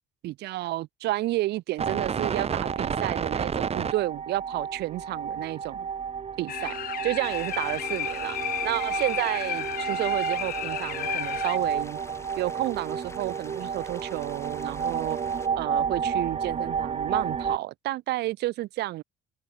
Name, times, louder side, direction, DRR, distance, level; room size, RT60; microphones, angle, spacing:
voice 1, 0.2-5.9 6.4-6.7 7.0-8.4 8.6-12.0 12.4-15.2 15.5-19.0, right 16 dB, 80° right, 5.0 m, -31 dB
sound 1, 1.8-17.6, right 6 dB, 40° right, 4.6 m, -31 dB
sound 2, 6.5-11.6, left 13 dB, 60° left, 0.7 m, -33 dB
sound 3, 7.2-15.5, left 3 dB, 15° left, 6.1 m, -48 dB
cardioid pair, 110°, 17 cm